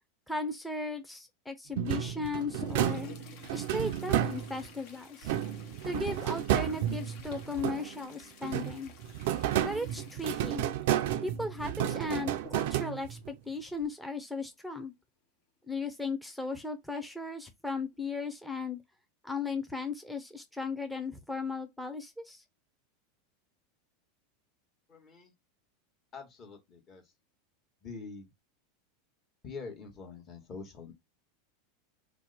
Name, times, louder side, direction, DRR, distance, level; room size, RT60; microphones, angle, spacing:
voice 1, 0.3-3.1 3.5-5.3 5.8-8.9 9.6-10.6 11.2-14.9 15.7-18.8 19.2-22.4, left 3 dB, 5° left, 0.6 m, -36 dB
sound 1, 1.8-4.8 5.2-8.1 8.4-13.4, right 12 dB, 65° right, 0.3 m, -32 dB
Toilet flush, 2.0-14.0 15.9-16.0 16.3-16.4 17.2-17.3 17.9-18.2 18.6-18.8, left 6 dB, 60° left, 0.8 m, -52 dB
voice 2, 24.9-25.3 26.1-27.0 27.8-28.3 29.4-30.9, left 4 dB, 35° left, 1.3 m, -45 dB
2.8 x 2.2 x 3.9 m
hypercardioid pair, 105°, 0 cm